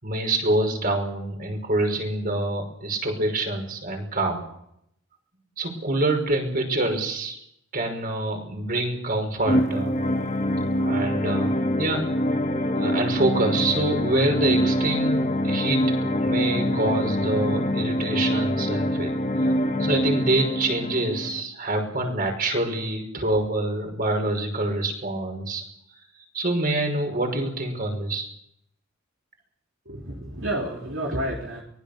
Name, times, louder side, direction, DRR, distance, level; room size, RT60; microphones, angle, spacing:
voice 1, 0.0-4.4 5.6-7.4 7.7-9.9 10.8-12.2 12.7-15.1 15.4-19.5 19.8-25.6 26.3-28.3, right 2 dB, 45° right, 4 dB, 5.7 m, -26 dB
sound 1, 9.4-21.4, equal, 35° left, 1.8 m, -24 dB
voice 2, 29.9-31.6, right 1 dB, 70° right, -1 dB, 3.6 m, -30 dB
23.5 x 20.5 x 6.9 m, 0.75 s
head